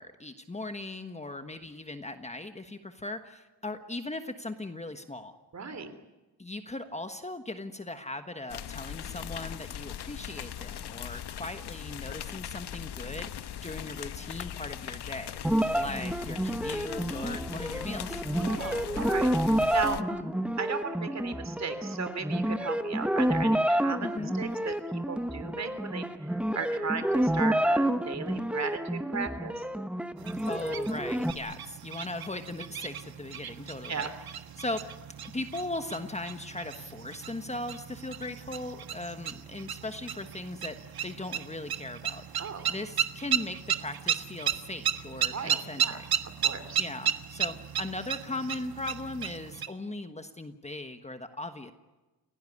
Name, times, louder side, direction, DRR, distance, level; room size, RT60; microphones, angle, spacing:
voice 1, 0.0-5.3 6.4-18.2 20.0-20.3 24.0-24.3 30.5-34.1 34.6-34.8 35.3-42.4 42.7-46.1 46.8-51.7, left 2 dB, 15° left, 7 dB, 1.3 m, -38 dB
voice 2, 5.5-5.9 18.3-20.0 20.6-24.1 24.3-26.1 26.5-29.6 33.9-34.1 42.4-42.7 45.3-46.8, right 5 dB, 40° right, 10 dB, 3.1 m, -36 dB
sound 1, 8.5-20.0, left 10 dB, 75° left, 1.0 m, -40 dB
sound 2, 15.4-31.3, right 1 dB, 5° right, 1.1 m, -29 dB
sound 3, 30.2-49.7, right 9 dB, 65° right, 1.4 m, -35 dB
29.5 x 17.5 x 9.9 m, 1.1 s
wide cardioid pair, 155°, 40 cm